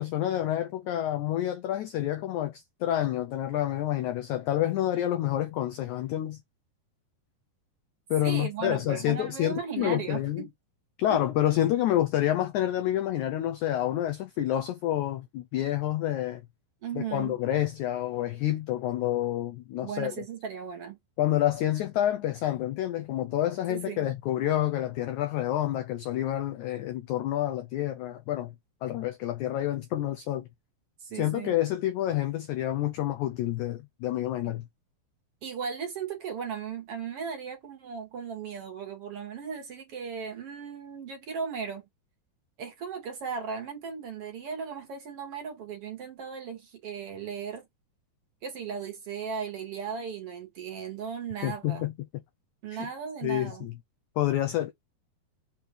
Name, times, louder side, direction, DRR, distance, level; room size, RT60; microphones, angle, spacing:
voice 1, 0.0-6.4 8.1-10.5 11.0-16.4 16.9-20.1 21.2-28.5 28.8-30.5 31.2-34.7 51.4-51.9 52.7-52.9 53.2-53.7 54.2-54.7, left 12 dB, 90° left, 1.7 m, -28 dB
voice 2, 8.2-10.5 11.1-11.2 16.8-17.4 19.8-21.0 23.7-24.1 31.0-31.6 35.4-41.8 42.6-47.7 48.4-51.9 52.6-53.7, right 6 dB, 50° right, 2.0 m, -36 dB
6.4 x 3.0 x 5.2 m
omnidirectional pair, 4.3 m